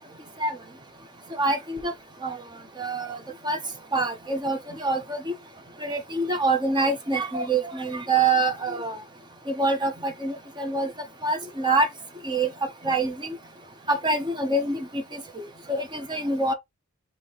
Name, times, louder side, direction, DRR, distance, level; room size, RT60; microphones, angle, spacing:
voice 1, 1.4-1.9 2.2-2.4 2.8-3.2 3.4-3.6 3.9-5.3 5.8-9.0 9.5-10.9 11.2-11.9 12.2-12.5 12.8-13.4 13.9-15.4 15.7-16.5, right 2 dB, 20° right, 0.7 m, -25 dB
3.1 x 2.8 x 4.1 m
head